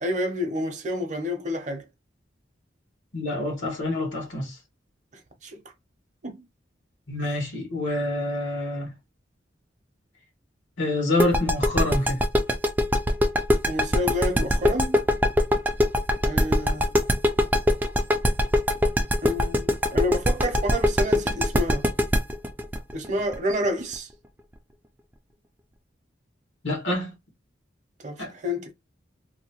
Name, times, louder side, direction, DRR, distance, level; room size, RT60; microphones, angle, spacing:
voice 1, 0.0-1.8 5.4-5.6 6.2-6.4 13.7-15.0 16.3-16.9 19.2-21.9 22.9-24.1 28.0-28.7, left 1 dB, 40° right, 0.7 m, -29 dB
voice 2, 3.1-4.6 7.1-8.9 10.8-12.2 26.6-27.1 28.2-28.3, left 1 dB, 85° left, 1.3 m, -27 dB
sound 1, 11.2-23.9, left 1 dB, 10° right, 0.3 m, -21 dB
2.7 x 2.2 x 2.8 m
head